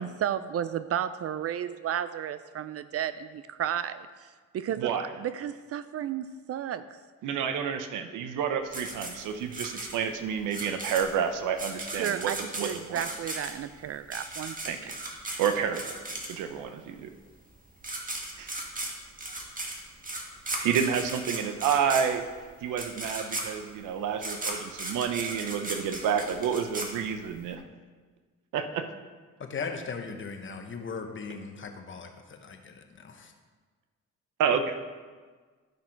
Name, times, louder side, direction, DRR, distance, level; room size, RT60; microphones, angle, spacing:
voice 1, 0.0-4.9 5.2-7.0 11.9-14.6, right 10 dB, 50° right, 13 dB, 0.4 m, -33 dB
voice 2, 4.8-5.1 7.2-13.0 14.7-14.9 15.4-15.9 16.3-17.1 18.4-18.5 20.6-22.3 22.6-27.6 28.5-28.9 34.4-34.9, right 7 dB, 90° right, 8 dB, 0.8 m, -29 dB
sound 1, 8.7-16.7 17.5-17.6 17.8-27.5, right 2 dB, 25° right, 1.7 m, -36 dB
voice 3, 29.4-33.3, left 5 dB, 40° left, 5 dB, 1.2 m, -38 dB
12.0 x 5.9 x 4.5 m, 1.4 s
cardioid pair, 90°, 30 cm